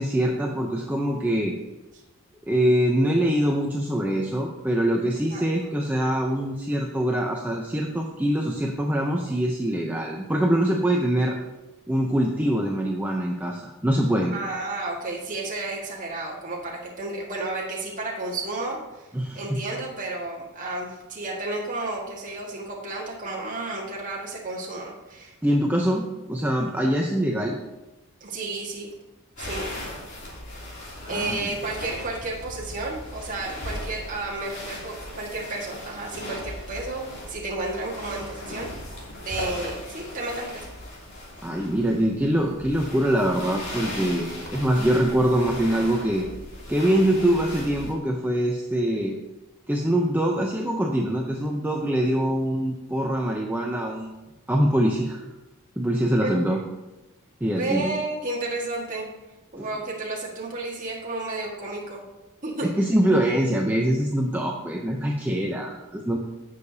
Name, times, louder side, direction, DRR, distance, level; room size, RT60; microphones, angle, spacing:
voice 1, 0.0-1.6 2.5-11.4 11.9-14.3 19.1-19.6 25.4-27.6 31.1-31.5 41.4-46.3 46.7-49.2 49.7-54.1 54.5-55.2 55.8-56.6 57.4-57.9 59.6-59.7 62.6-66.2, right 1 dB, 10° right, -1 dB, 0.6 m, -24 dB
voice 2, 14.3-19.1 19.4-25.4 28.2-28.9 29.4-29.6 31.1-38.7 39.2-40.7 56.2-56.3 57.4-59.1 59.5-62.0 62.4-62.7, right 2 dB, 35° right, -4 dB, 1.7 m, -32 dB
sound 1, 29.4-47.9, left 1 dB, 50° left, 2.9 m, -38 dB
16.5 x 6.7 x 2.8 m, 1.1 s
head